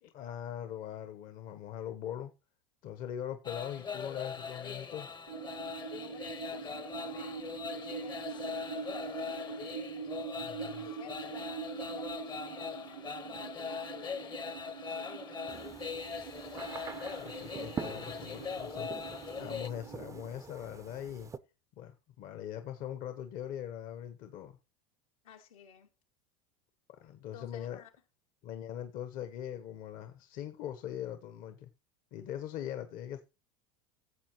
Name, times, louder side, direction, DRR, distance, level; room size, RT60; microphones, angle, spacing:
voice 1, 0.0-2.3 2.8-5.2 10.4-10.9 17.1-18.9 19.4-21.3 21.8-24.6 27.0-27.8 28.4-31.7 32.1-33.2, left 10 dB, 55° left, 1.2 m, -41 dB
sound 1, 3.4-19.7, left 6 dB, 25° left, 0.9 m, -41 dB
sound 2, 5.3-20.3, right 7 dB, 80° right, 1.5 m, -44 dB
voice 2, 5.9-10.1 10.8-16.9 25.2-25.9 27.3-27.9, left 9 dB, 85° left, 2.7 m, -55 dB
sound 3, 15.5-21.4, right 6 dB, 20° right, 0.6 m, -45 dB
14.0 x 7.2 x 3.1 m
supercardioid pair, 105°, 17 cm